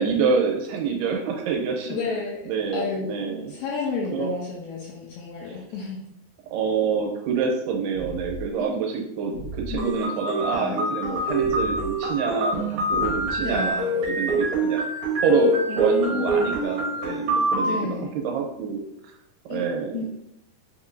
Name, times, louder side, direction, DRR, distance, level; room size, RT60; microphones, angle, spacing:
voice 1, 0.0-2.0 2.5-3.5 4.1-4.3 6.5-12.7 12.9-14.8 15.2-17.9 18.2-18.8 19.5-20.0, right 6 dB, 80° right, 1 dB, 2.7 m, -26 dB
voice 2, 1.9-2.4 2.7-6.0 8.6-8.8 9.7-10.0 10.5-10.8 13.4-14.0 15.7-16.6 17.6-18.1 19.5-19.7 19.9-20.0, left 4 dB, 85° left, -4 dB, 2.0 m, -31 dB
sound 1, 7.9-8.5 9.3-9.9 11.4-11.9 12.9-13.5, equal, 65° left, 2.5 m, -36 dB
sound 2, 9.8-17.8, right 1 dB, 65° right, 1.5 m, -25 dB
6.1 x 2.7 x 2.5 m, 0.78 s
omnidirectional pair, 4.7 m